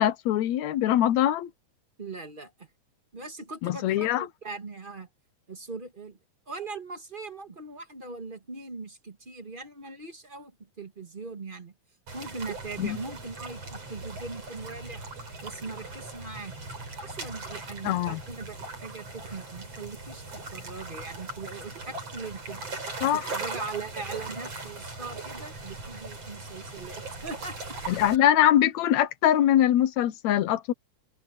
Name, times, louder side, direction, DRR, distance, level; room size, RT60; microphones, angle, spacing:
voice 1, 0.0-1.5 3.6-4.3 12.8-13.0 17.8-18.2 23.0-23.3 27.9-30.7, left 11 dB, 70° left, 2.1 m, -23 dB
voice 2, 2.0-2.7 3.1-5.1 5.5-6.2 6.5-11.7 12.1-15.0 15.4-16.5 17.0-20.2 20.5-22.6 23.1-27.6, right 3 dB, 25° right, 1.3 m, -40 dB
sound 1, 12.1-28.2, right 3 dB, 50° right, 7.8 m, -39 dB
open air
omnidirectional pair, 3.6 m